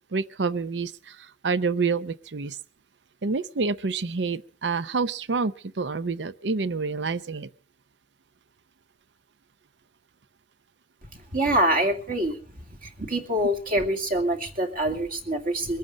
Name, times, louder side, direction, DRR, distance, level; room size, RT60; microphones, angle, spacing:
voice 1, 0.1-2.6 3.2-7.5, right 4 dB, 85° right, 16 dB, 0.7 m, -28 dB
voice 2, 11.3-12.4 12.7-15.8, right 1 dB, 55° right, 5 dB, 2.6 m, -25 dB
23.0 x 9.4 x 6.2 m, 0.40 s
head